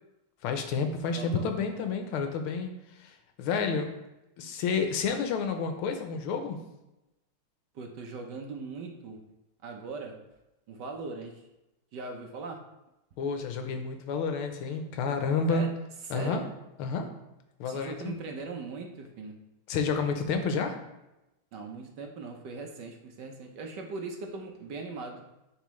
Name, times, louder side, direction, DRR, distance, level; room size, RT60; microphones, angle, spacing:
voice 1, 0.4-2.7 3.0-3.9 4.4-6.6 13.2-15.6 16.1-16.4 16.8-17.1 17.6-18.2 19.7-20.8, left 5 dB, 80° left, 6 dB, 1.7 m, -30 dB
voice 2, 1.1-1.5 7.7-9.2 9.6-10.1 10.7-11.3 11.9-12.6 15.5-15.7 16.1-16.4 17.6-19.4 21.5-25.2, right 3 dB, 65° right, 2 dB, 1.3 m, -39 dB
10.5 x 4.1 x 3.1 m, 0.95 s
omnidirectional pair, 2.3 m